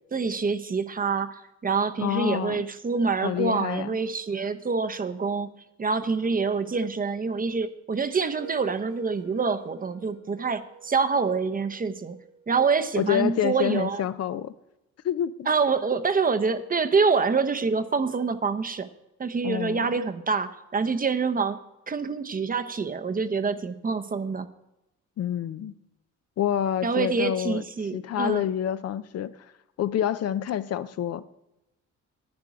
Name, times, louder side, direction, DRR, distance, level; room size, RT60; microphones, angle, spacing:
voice 1, 0.1-5.5 5.8-12.2 12.5-14.1 15.5-18.9 19.2-21.6 21.9-24.5 26.8-28.4, right 5 dB, 30° right, 10 dB, 0.7 m, -26 dB
voice 2, 2.0-2.6 3.2-3.9 13.0-14.5 15.0-15.5 19.4-20.0 25.2-25.7 26.4-27.6 27.9-29.3 29.8-31.2, left 10 dB, 55° left, 13 dB, 0.6 m, -27 dB
sound 1, 7.8-13.7, right 7 dB, 90° right, 1.9 m, -50 dB
10.5 x 9.5 x 4.9 m, 0.90 s
cardioid pair, 90°, 30 cm